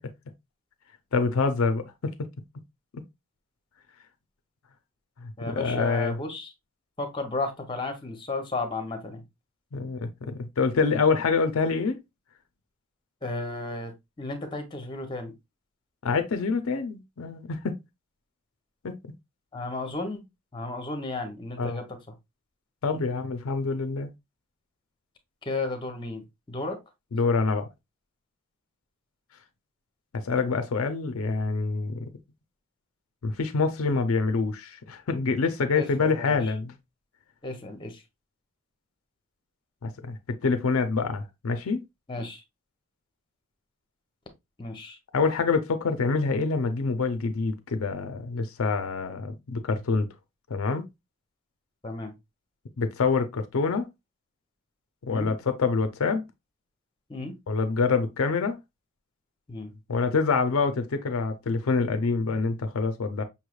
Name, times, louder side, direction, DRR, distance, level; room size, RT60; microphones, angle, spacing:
voice 1, 1.1-2.3 2.9-3.0 5.2-6.2 9.7-12.0 16.0-17.8 18.8-19.0 21.6-21.8 22.8-24.1 27.1-27.7 30.1-32.0 33.2-36.7 39.8-41.8 45.1-50.1 50.5-50.9 52.8-53.9 55.0-56.2 57.5-58.6 59.9-63.2, left 4 dB, 75° left, 0.5 m, -26 dB
voice 2, 5.4-6.5 7.0-9.2 13.2-15.3 19.5-20.3 20.5-21.8 25.4-26.8 35.8-36.4 37.4-38.0 42.1-42.4 44.6-45.0 51.8-52.1 55.1-55.3 57.1-57.4 59.5-59.7, left 2 dB, 20° left, 0.7 m, -33 dB
5.5 x 3.1 x 2.3 m
head